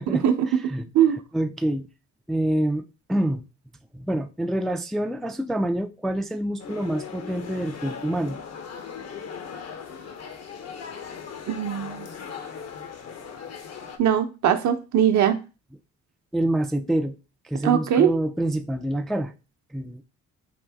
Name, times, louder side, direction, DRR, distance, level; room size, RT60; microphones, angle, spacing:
voice 1, 0.0-1.9 2.3-3.4 3.9-8.4 16.3-17.2 17.4-19.3 19.7-20.0, right 1 dB, ahead, 0.3 m, -27 dB
sound 1, 6.6-14.0, left 6 dB, 55° left, 0.9 m, -38 dB
voice 2, 11.5-12.1 14.0-15.4 17.6-18.1, right 9 dB, 70° right, 0.8 m, -20 dB
5.2 x 2.6 x 3.4 m
cardioid pair, 90°, 30 cm